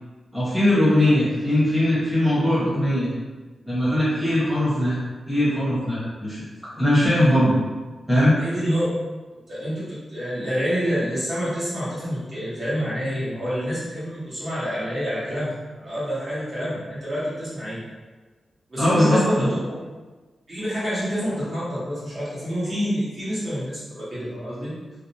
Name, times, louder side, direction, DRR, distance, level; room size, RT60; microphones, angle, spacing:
voice 1, 0.3-3.1 3.6-5.0 5.3-6.4 6.7-7.6 8.1-8.3 18.8-19.5, left 1 dB, ahead, -11 dB, 1.0 m, -20 dB
voice 2, 8.3-8.8 9.5-15.5 15.8-17.8 18.7-19.7 20.5-24.7, equal, 40° right, -10 dB, 1.1 m, -27 dB
2.6 x 2.0 x 2.7 m, 1.3 s
wide cardioid pair, 115°, 0 cm